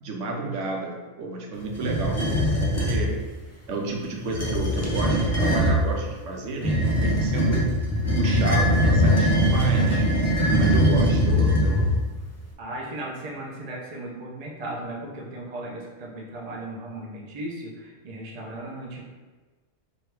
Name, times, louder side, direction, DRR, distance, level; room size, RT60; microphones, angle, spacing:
voice 1, 0.0-3.2 3.7-7.7 8.1-10.1 10.6-12.0, right 3 dB, 85° right, 1 dB, 1.0 m, -30 dB
sound 1, 1.8-3.1 4.2-5.8 6.6-12.1, equal, 25° left, 0.4 m, -21 dB
voice 2, 12.6-19.0, right 1 dB, 40° right, -2 dB, 0.7 m, -36 dB
4.6 x 2.7 x 3.3 m, 1.3 s
omnidirectional pair, 1.2 m